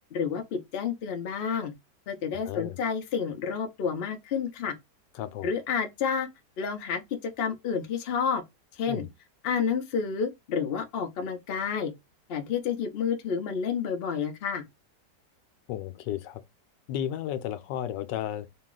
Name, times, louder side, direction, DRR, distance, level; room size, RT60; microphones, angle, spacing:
voice 1, 0.1-1.7 2.1-4.7 5.4-6.3 6.6-8.4 8.8-9.0 9.4-11.9 12.3-14.6, left 6 dB, 60° left, 0.6 m, -30 dB
voice 2, 2.5-2.8 5.2-5.5 8.9-9.1 15.7-16.4 16.9-18.5, left 11 dB, 90° left, 1.3 m, -33 dB
4.0 x 2.3 x 3.7 m
omnidirectional pair, 1.9 m